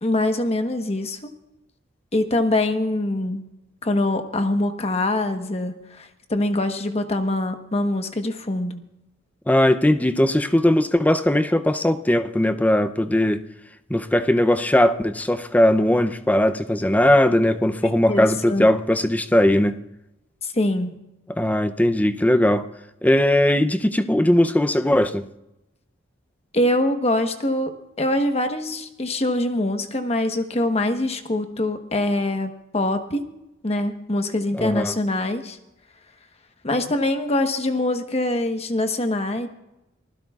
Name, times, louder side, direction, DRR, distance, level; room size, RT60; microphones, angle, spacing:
voice 1, 0.0-1.3 2.1-3.4 3.8-8.8 18.1-18.7 20.4-20.9 26.5-27.7 28.0-33.2 33.6-35.6 36.6-39.5, left 1 dB, 30° left, 1.1 m, -24 dB
voice 2, 9.5-13.4 13.9-19.7 21.4-22.6 23.0-25.3 34.5-34.9, left 1 dB, 10° left, 0.5 m, -19 dB
24.5 x 15.5 x 2.4 m
head